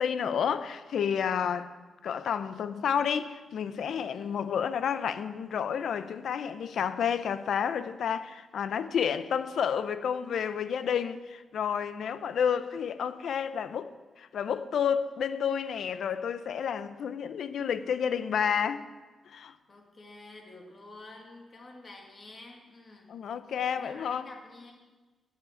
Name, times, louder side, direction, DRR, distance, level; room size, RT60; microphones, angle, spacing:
voice 1, 0.0-1.7 2.0-18.8 19.3-19.5 23.1-24.3, left 7 dB, 70° left, 0.5 m, -30 dB
voice 2, 4.1-4.5 19.7-23.1 23.7-24.7, left 2 dB, 35° left, 1.9 m, -49 dB
9.6 x 5.6 x 8.3 m
wide cardioid pair, 130°, 0 cm